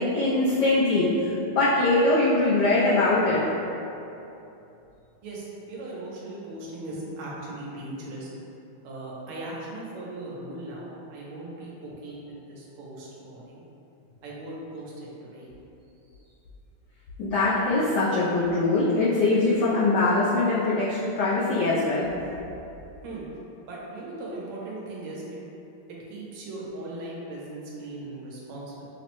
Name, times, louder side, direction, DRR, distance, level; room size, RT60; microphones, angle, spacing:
voice 1, 0.0-3.4 17.2-22.1, left 2 dB, 90° left, -8 dB, 0.9 m, -22 dB
voice 2, 5.2-8.3 8.8-13.6 14.2-15.5 23.0-23.2 23.6-25.4 26.1-28.9, right 2 dB, 90° right, -5 dB, 1.7 m, -38 dB
5.6 x 2.1 x 2.9 m, 2.9 s
omnidirectional pair, 2.4 m